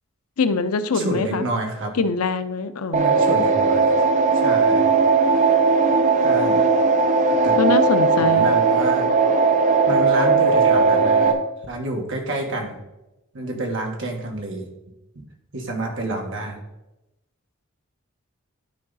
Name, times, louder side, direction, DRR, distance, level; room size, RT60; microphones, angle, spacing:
voice 1, 0.4-1.5 1.9-3.1 7.6-8.5, left 4 dB, 85° left, 11 dB, 0.6 m, -23 dB
voice 2, 0.9-1.9 3.0-3.9 4.3-4.9 6.2-6.6 7.4-7.6 8.1-9.1 9.8-11.4 11.7-12.8 13.3-14.7 15.1-15.2 15.5-16.6, right 2 dB, 60° right, 1 dB, 1.6 m, -28 dB
sound 1, 2.9-11.3, right 4 dB, 35° right, 0.7 m, -17 dB
11.5 x 4.7 x 4.1 m, 0.94 s
head